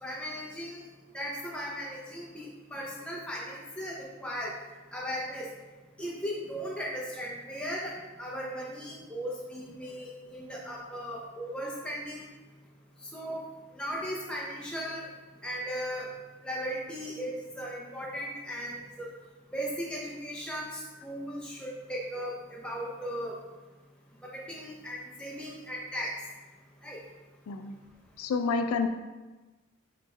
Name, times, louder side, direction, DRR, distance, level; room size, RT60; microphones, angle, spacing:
voice 1, 0.0-0.8 1.1-4.5 4.9-5.5 6.0-12.3 13.1-13.4 13.7-15.1 15.4-16.1 16.4-19.1 19.5-23.4 24.2-26.1 26.8-27.0, equal, 5° left, -4 dB, 0.4 m, -37 dB
voice 2, 28.2-28.9, left 4 dB, 75° left, 7 dB, 0.3 m, -28 dB
5.3 x 3.2 x 3.1 m, 1.2 s
head